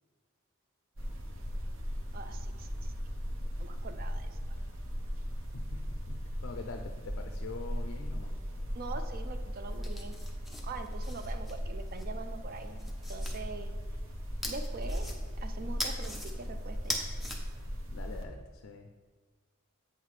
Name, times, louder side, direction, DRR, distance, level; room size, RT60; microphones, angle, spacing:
sound 1, 1.0-18.2, equal, 65° right, 0.9 m, -38 dB
voice 1, 2.1-2.9 3.6-4.3 8.7-10.2 10.6-13.7 14.4-15.1 15.4-17.0, right 3 dB, 45° right, 8 dB, 0.4 m, -43 dB
voice 2, 5.5-8.4 17.9-18.9, left 3 dB, 60° left, 5 dB, 0.4 m, -44 dB
sound 2, 9.7-12.0 12.6-13.4 14.4-15.4 15.8-16.3 16.7-17.4, left 1 dB, ahead, 0.6 m, -40 dB
8.1 x 5.7 x 3.2 m, 1.4 s
head